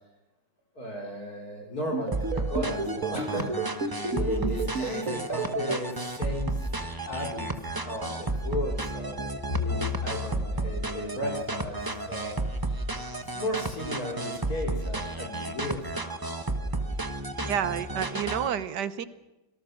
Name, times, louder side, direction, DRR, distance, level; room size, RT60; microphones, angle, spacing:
voice 1, 0.8-6.6 7.1-7.5 7.8-11.8 12.1-12.4 13.2-15.8, left 1 dB, 50° left, 0 dB, 3.7 m, -35 dB
sound 1, 1.9-5.8, right 4 dB, 45° right, 1.7 m, -30 dB
sound 2, 2.1-18.5, right 2 dB, 15° right, 0.7 m, -32 dB
Bowed string instrument, 9.5-13.9, left 6 dB, 30° left, 1.5 m, -37 dB
voice 2, 17.4-19.1, right 9 dB, 65° right, 13 dB, 1.5 m, -30 dB
26.0 x 18.0 x 6.4 m, 1.0 s
omnidirectional pair, 2.1 m